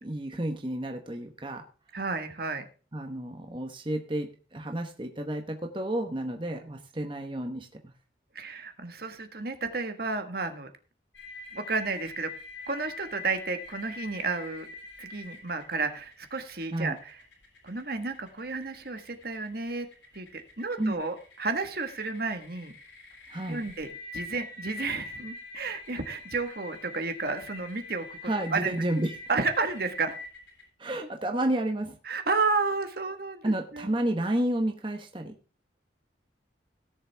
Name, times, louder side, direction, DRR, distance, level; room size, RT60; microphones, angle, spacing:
voice 1, 0.0-1.6 2.9-7.9 16.7-17.0 20.8-21.0 23.3-23.6 28.2-29.2 30.8-32.0 33.4-35.3, right 1 dB, 25° right, 4 dB, 1.1 m, -31 dB
voice 2, 1.9-2.6 8.3-10.7 11.5-12.3 12.7-14.7 15.0-17.2 17.6-19.9 20.1-22.7 23.5-28.2 28.5-28.7 29.3-30.2 32.1-33.9, right 4 dB, 55° right, 7 dB, 1.5 m, -32 dB
sound 1, 11.1-30.6, left 3 dB, 80° left, 3.6 m, -44 dB
17.0 x 7.2 x 3.5 m, 0.37 s
head